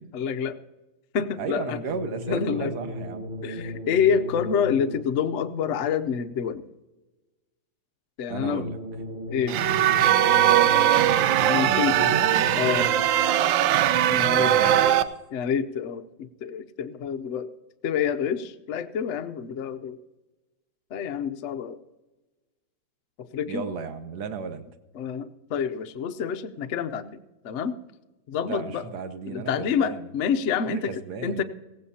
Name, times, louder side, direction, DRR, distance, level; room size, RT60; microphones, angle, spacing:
voice 1, 0.1-0.6 1.1-1.8 2.3-2.7 3.4-6.6 8.2-8.7 9.3-9.6 11.4-12.0 12.5-12.9 14.1-14.5 15.3-17.5 17.8-20.0 20.9-21.8 23.2-23.7 24.9-27.2 27.4-27.7 28.3-28.8 29.3-31.4, left 7 dB, 85° left, 8 dB, 0.6 m, -27 dB
voice 2, 1.4-3.3 8.3-8.8 10.4-10.8 11.5-12.3 14.1-15.0 23.5-24.7 28.4-30.1 30.6-31.4, right 5 dB, 60° right, 10 dB, 1.3 m, -34 dB
sound 1, 1.9-5.3 8.3-13.3, equal, 25° right, 1.4 m, -36 dB
sound 2, 9.5-15.0, right 11 dB, 80° right, 1.3 m, -20 dB
17.0 x 15.5 x 2.8 m, 1.1 s
omnidirectional pair, 2.1 m